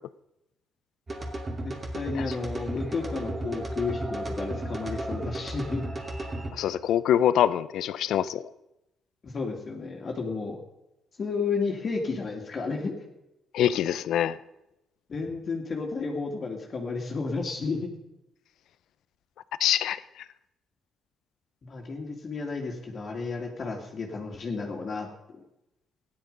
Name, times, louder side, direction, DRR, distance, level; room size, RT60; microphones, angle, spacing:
sound 1, 1.1-6.5, right 1 dB, 30° right, 2.7 m, -34 dB
voice 1, 1.6-5.8 9.2-10.6 11.2-13.0 15.1-17.9 21.6-25.1, left 4 dB, 45° left, 0 dB, 2.3 m, -32 dB
voice 2, 6.5-8.5 13.5-14.4 19.6-20.0, left 10 dB, 75° left, 16 dB, 0.6 m, -24 dB
14.5 x 11.0 x 5.4 m, 0.89 s
cardioid pair, 90°, 0 cm